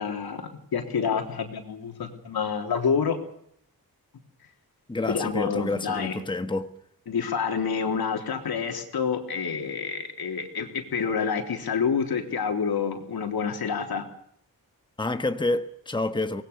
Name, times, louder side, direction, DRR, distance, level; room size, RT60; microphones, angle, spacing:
voice 1, 0.0-3.2 5.1-6.2 7.1-14.0, left 6 dB, 90° left, 3.6 m, -28 dB
voice 2, 4.9-6.7 15.0-16.4, left 2 dB, 15° left, 1.3 m, -28 dB
24.5 x 20.0 x 7.0 m
wide cardioid pair, 125°, 36 cm